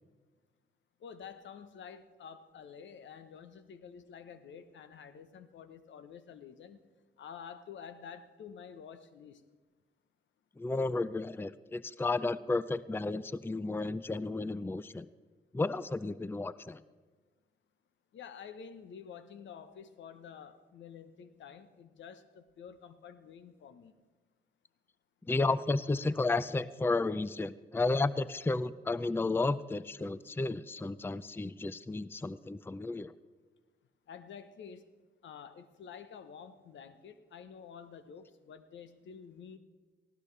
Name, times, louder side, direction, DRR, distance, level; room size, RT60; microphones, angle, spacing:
voice 1, 1.0-6.8 7.2-9.4 18.1-23.9 34.1-34.8 35.2-39.6, left 7 dB, 70° left, 12 dB, 0.9 m, -49 dB
voice 2, 10.6-15.1 15.5-16.8 25.3-33.1, left 3 dB, 10° left, 17 dB, 0.5 m, -32 dB
18.5 x 16.5 x 3.3 m, 1.3 s
supercardioid pair, 45°, 20 cm